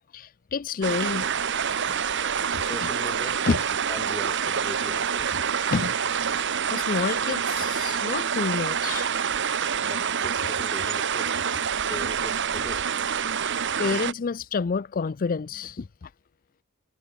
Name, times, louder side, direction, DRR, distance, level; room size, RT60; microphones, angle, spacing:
voice 1, 0.1-1.3 3.5-3.6 5.7-6.0 6.3-9.2 13.4-16.1, left 4 dB, 40° left, 0.4 m, -29 dB
sound 1, 0.8-14.1, right 7 dB, 55° right, 1.3 m, -27 dB
voice 2, 2.2-3.6 3.9-5.4 9.8-11.4 11.8-13.0, left 1 dB, 15° left, 1.4 m, -40 dB
head